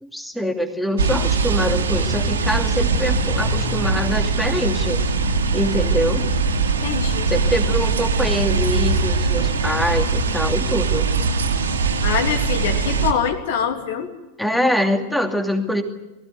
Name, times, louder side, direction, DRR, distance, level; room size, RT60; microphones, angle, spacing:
voice 1, 0.0-5.0 5.5-6.2 7.3-11.0 14.4-15.8, equal, ahead, 5 dB, 2.6 m, -24 dB
sound 1, 1.0-13.1, right 4 dB, 70° right, 2.8 m, -21 dB
voice 2, 6.8-7.3 12.0-14.1, left 7 dB, 55° left, 6 dB, 3.1 m, -24 dB
23.0 x 16.0 x 9.6 m, 1.0 s
figure-of-eight pair, 90°, 0 cm